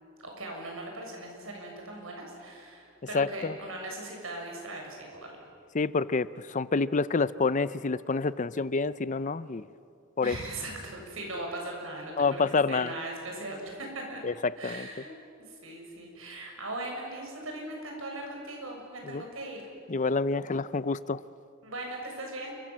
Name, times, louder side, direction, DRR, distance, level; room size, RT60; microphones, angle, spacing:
voice 1, 0.2-5.4 10.2-14.2 14.6-19.7 21.6-22.6, right 1 dB, 80° right, 1 dB, 7.2 m, -39 dB
voice 2, 3.1-3.5 5.7-9.7 10.2-10.4 12.2-12.9 14.2-14.9 19.1-19.2 19.9-21.2, left 4 dB, 40° left, 16 dB, 0.6 m, -28 dB
29.0 x 24.0 x 7.4 m, 2.5 s
head